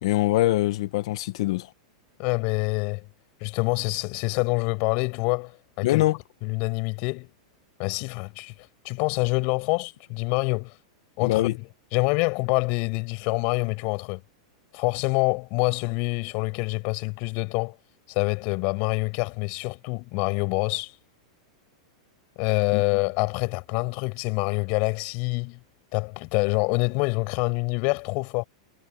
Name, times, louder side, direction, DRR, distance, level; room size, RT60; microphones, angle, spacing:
voice 1, 0.0-1.7 5.8-6.2 11.2-11.5 22.7-22.8, left 16 dB, 65° left, 1.3 m, -23 dB
voice 2, 2.2-3.1 3.4-6.0 6.4-7.3 7.8-10.8 11.2-14.2 14.7-17.8 18.1-21.0 22.4-25.6 25.9-28.4, left 31 dB, 50° left, 6.0 m, -26 dB
supercardioid pair, 135°, 3 cm